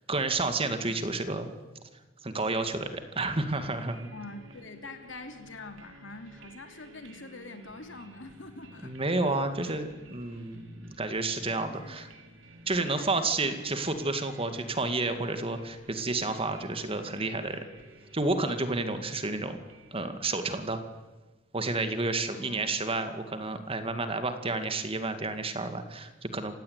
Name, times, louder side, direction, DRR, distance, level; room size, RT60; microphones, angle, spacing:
voice 1, 0.1-1.5 2.2-4.1 8.8-12.1 12.7-17.6 18.1-19.6 19.9-20.8 21.5-26.6, right 2 dB, 30° right, 8 dB, 2.1 m, -30 dB
sound 1, 2.6-21.3, right 1 dB, 75° right, 4.2 m, -53 dB
voice 2, 4.1-9.8 11.7-12.2 12.7-13.3 13.6-13.7 22.3-22.8, left 2 dB, 70° left, 7 dB, 2.8 m, -46 dB
28.5 x 16.0 x 9.6 m, 1.2 s
head